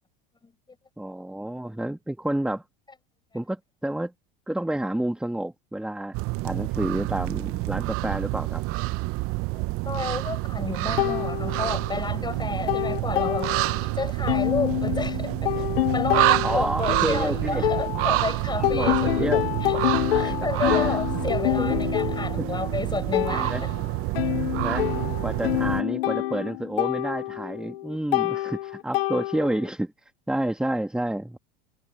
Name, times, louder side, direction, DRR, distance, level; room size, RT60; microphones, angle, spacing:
voice 1, 1.0-2.6 3.3-4.1 4.5-6.2 6.4-8.6 16.4-17.6 18.6-19.5 20.1-20.4 20.6-21.8 22.4-22.5 23.3-23.6 24.5-24.9 25.2-31.4, right 1 dB, 5° right, 2.0 m, -30 dB
sound 1, 6.1-25.8, right 21 dB, 50° right, 0.8 m, -28 dB
voice 2, 9.5-13.7 14.0-15.5 15.9-19.3 19.7-19.8 20.1-23.7 24.2-24.3, left 4 dB, 15° left, 6.4 m, -31 dB
sound 2, 11.0-12.1 12.4-13.9 14.3-18.3 18.6-29.7, left 16 dB, 80° left, 1.9 m, -27 dB
supercardioid pair, 110°, 29 cm